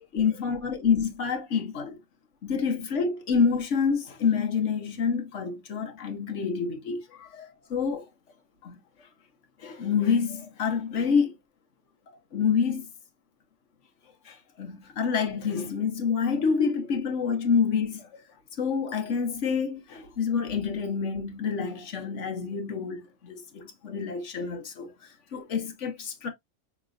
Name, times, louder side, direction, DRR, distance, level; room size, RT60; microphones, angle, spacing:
voice 1, 0.1-2.0 2.4-7.0 7.7-8.0 8.7-8.8 9.6-11.3 12.3-12.9 14.3-18.2 18.6-24.9 25.3-26.3, left 6 dB, 65° left, 1.4 m, -27 dB
5.9 x 3.1 x 2.5 m
omnidirectional pair, 1.4 m